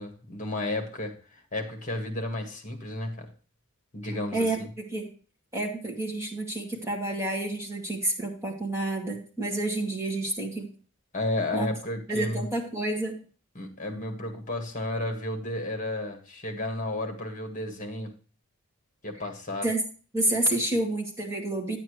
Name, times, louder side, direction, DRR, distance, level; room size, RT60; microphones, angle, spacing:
voice 1, 0.0-3.3 3.9-4.5 11.1-12.5 13.5-18.1 19.0-19.7, left 2 dB, 35° left, 5 dB, 1.7 m, -32 dB
voice 2, 5.5-10.7 11.5-11.7 12.1-13.2 19.6-19.8 20.1-21.8, right 2 dB, 15° right, -1 dB, 2.1 m, -29 dB
9.7 x 8.8 x 3.1 m, 0.38 s
head